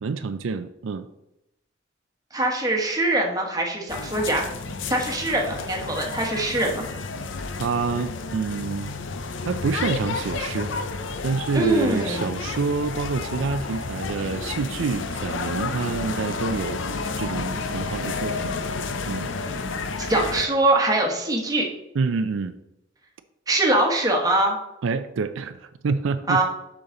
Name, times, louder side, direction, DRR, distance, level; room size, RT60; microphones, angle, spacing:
voice 1, 0.0-1.1 7.6-8.9 9.5-10.7 11.2-16.8 17.2-18.5 19.1-19.3 21.9-22.5 24.8-26.4, right 4 dB, 85° right, 10 dB, 0.4 m, -27 dB
voice 2, 2.3-4.4 4.9-6.8 11.5-12.3 20.0-21.7 23.5-24.6 26.3-26.4, right 2 dB, 20° right, 0 dB, 1.2 m, -23 dB
sound 1, 3.9-20.5, left 4 dB, 75° left, 0.6 m, -31 dB
6.9 x 5.8 x 3.8 m, 0.88 s
head